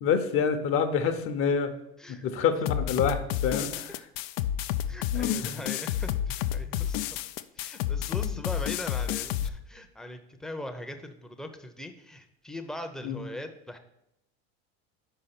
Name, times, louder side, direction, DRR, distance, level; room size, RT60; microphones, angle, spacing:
voice 1, 0.0-1.7 2.1-3.9 5.1-5.5 13.0-13.2, left 6 dB, 50° left, 8 dB, 0.8 m, -27 dB
sound 1, 2.7-9.5, left 11 dB, 75° left, 0.5 m, -30 dB
voice 2, 4.9-7.2 7.5-13.8, left 1 dB, ahead, 5 dB, 0.6 m, -40 dB
5.6 x 4.7 x 5.8 m, 0.83 s
supercardioid pair, 110°, 29 cm